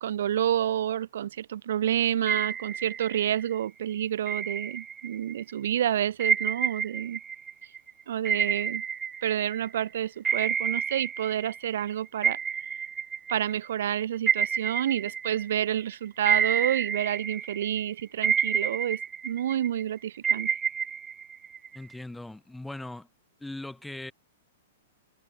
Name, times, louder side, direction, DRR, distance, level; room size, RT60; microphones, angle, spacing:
voice 1, 0.0-7.2 8.1-8.8 9.2-12.4 13.3-20.5, right 10 dB, 70° right, 1.6 m, -29 dB
sound 1, 2.3-3.5 4.3-5.4 6.2-9.8 10.2-11.9 12.2-15.8 16.3-17.8 18.2-19.8 20.2-21.9, right 7 dB, 15° right, 0.6 m, -29 dB
voice 2, 21.7-23.1 23.4-24.1, left 2 dB, 5° left, 3.8 m, -39 dB
hypercardioid pair, 140°, 0 cm